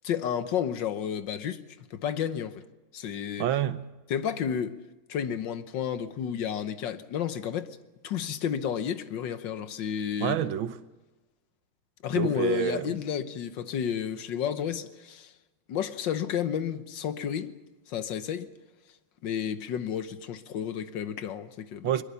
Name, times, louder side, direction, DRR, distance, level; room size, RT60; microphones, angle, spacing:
voice 1, 0.0-1.6 1.9-2.6 2.9-3.5 4.1-4.8 5.1-7.8 8.0-10.4 12.0-15.3 15.7-17.5 17.9-18.5 19.2-21.9, left 8 dB, 70° left, 1.6 m, -31 dB
voice 2, 3.4-3.9 10.2-10.8 12.1-12.9 21.8-22.0, right 10 dB, 85° right, 1.7 m, -28 dB
22.0 x 21.5 x 7.0 m
omnidirectional pair, 2.1 m